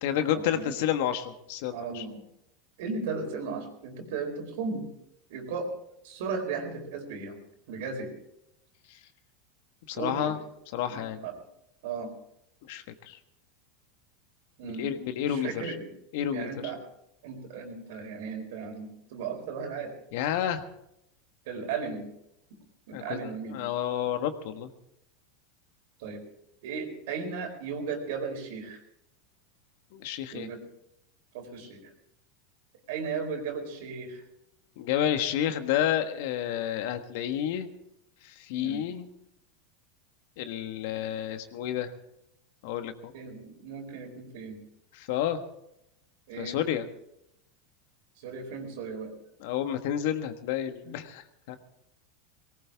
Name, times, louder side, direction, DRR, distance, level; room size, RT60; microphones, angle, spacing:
voice 1, 0.0-2.0 8.9-9.0 9.9-10.4 10.7-11.2 12.6-13.2 14.7-15.7 16.1-16.5 20.1-20.6 22.9-24.7 29.9-30.5 34.8-37.7 38.2-39.1 40.4-41.9 42.6-43.1 44.9-45.4 46.4-46.9 49.4-51.6, left 10 dB, 65° left, 8 dB, 1.5 m, -30 dB
voice 2, 1.7-2.2 2.8-4.9 5.3-5.7 6.0-7.4 7.7-8.1 9.9-10.3 10.8-11.3 11.8-12.1 14.6-14.9 15.2-15.9 16.3-16.8 17.2-19.9 21.5-22.1 22.9-23.6 26.0-26.2 26.6-28.8 30.3-30.6 31.3-31.9 32.9-34.2 38.6-38.8 40.9-41.0 43.1-44.6 46.3-46.6 48.2-49.1 50.8-51.0, right 5 dB, 70° right, 4 dB, 4.2 m, -36 dB
19.0 x 18.0 x 3.6 m, 0.80 s
hypercardioid pair, 115°, 0 cm